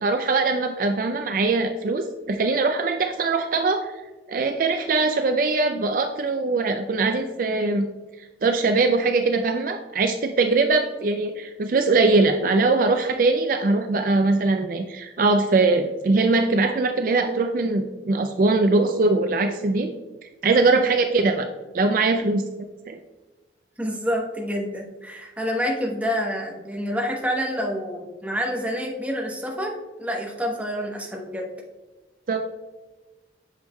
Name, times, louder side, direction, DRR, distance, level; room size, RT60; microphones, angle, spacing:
voice 1, 0.0-3.9 4.3-7.9 8.4-19.9 20.4-21.5 21.7-22.4 22.9-23.0 32.3-32.4, right 3 dB, 45° right, 6 dB, 0.4 m, -21 dB
voice 2, 23.8-31.5, equal, 10° right, 0 dB, 0.9 m, -28 dB
8.1 x 6.2 x 2.2 m, 1.2 s
head